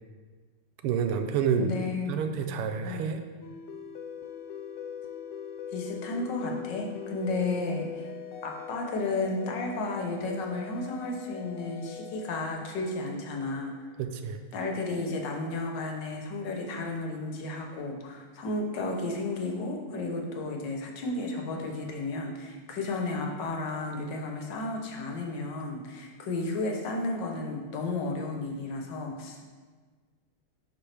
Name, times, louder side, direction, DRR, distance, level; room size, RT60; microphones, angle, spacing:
voice 1, 0.8-1.8 2.1-3.2 14.0-14.4, right 7 dB, 85° right, 7 dB, 1.5 m, -28 dB
voice 2, 1.6-2.2 2.8-3.1 5.7-8.1 8.4-13.7 14.5-29.5, left 2 dB, 60° left, 2 dB, 1.4 m, -33 dB
sound 1, 3.4-13.8, left 8 dB, 90° left, 1.6 m, -42 dB
10.5 x 4.5 x 3.3 m, 1.5 s
omnidirectional pair, 2.4 m